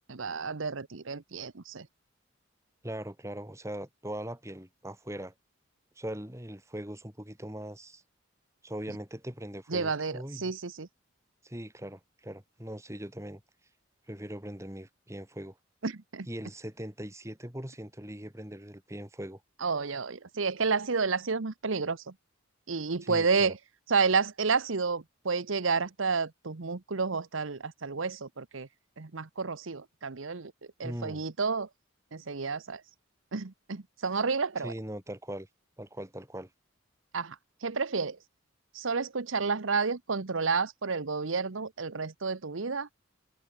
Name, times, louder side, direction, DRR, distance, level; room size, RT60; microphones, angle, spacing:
voice 1, 0.1-1.9 9.7-10.9 15.8-16.3 19.6-22.0 22.7-23.6 23.9-28.7 29.0-30.5 30.8-31.7 32.1-32.8 33.3-34.7 37.1-37.4 37.6-38.2 38.7-42.9, right 4 dB, 75° right, 1.0 m, -30 dB
voice 2, 2.8-5.3 6.0-8.0 8.6-10.5 11.4-13.4 14.1-15.5 16.3-19.4 23.0-23.5 30.8-31.2 34.6-35.5 35.8-36.5, right 1 dB, 15° right, 3.0 m, -40 dB
head